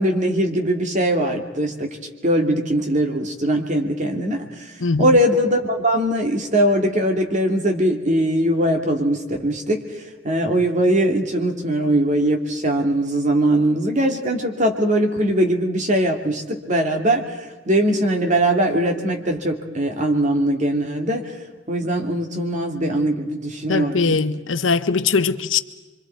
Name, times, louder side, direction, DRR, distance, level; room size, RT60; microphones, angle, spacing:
voice 1, 0.0-2.0 2.2-21.4 21.7-24.2, right 1 dB, 40° right, 2.4 m, -21 dB
voice 2, 4.8-5.2 23.7-25.6, left 4 dB, 85° left, 0.9 m, -21 dB
26.0 x 24.5 x 4.6 m
head